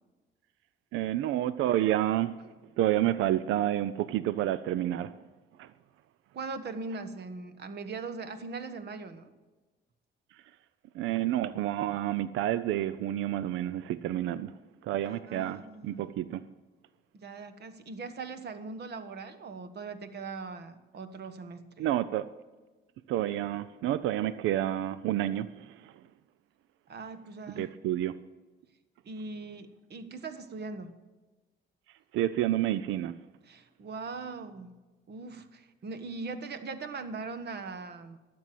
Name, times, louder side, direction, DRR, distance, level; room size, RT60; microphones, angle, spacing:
voice 1, 0.9-2.3 2.8-5.1 5.6-5.7 10.9-14.6 14.8-15.6 15.8-16.4 21.8-22.3 23.1-25.9 27.6-28.2 32.1-33.1, right 13 dB, 90° right, 15 dB, 0.5 m, -29 dB
voice 2, 6.3-9.3 15.0-16.2 17.1-21.9 26.9-27.7 29.0-30.9 33.4-34.7 35.1-38.2, right 4 dB, 55° right, 9 dB, 1.3 m, -40 dB
12.5 x 7.6 x 7.6 m, 1.2 s
cardioid pair, 90°, 20 cm